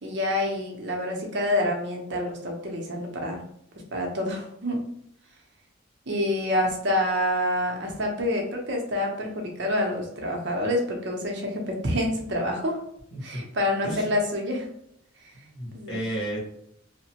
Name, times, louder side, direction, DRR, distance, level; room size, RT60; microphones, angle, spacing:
voice 1, 0.0-3.4 3.9-4.8 6.1-12.8 13.2-14.7 15.7-16.0, left 1 dB, 60° right, 1 dB, 0.7 m, -27 dB
voice 2, 15.3-16.4, right 1 dB, 75° left, -4 dB, 1.2 m, -33 dB
2.8 x 2.1 x 2.8 m, 0.73 s
head